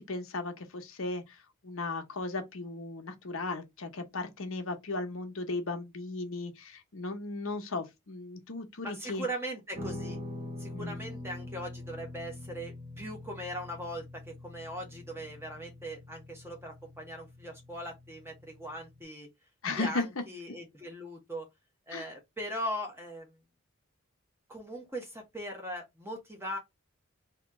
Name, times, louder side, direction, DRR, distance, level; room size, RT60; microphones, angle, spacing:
voice 1, 0.0-1.4 1.6-9.2 10.7-11.0 19.6-20.0 21.9-22.1, left 3 dB, 70° left, 0.9 m, -36 dB
voice 2, 8.8-10.2 10.6-19.3 19.7-21.5 21.9-23.4 24.5-26.6, equal, 10° right, 1.0 m, -40 dB
Guitar, 9.7-19.0, left 2 dB, 25° right, 1.3 m, -44 dB
2.9 x 2.9 x 3.5 m
head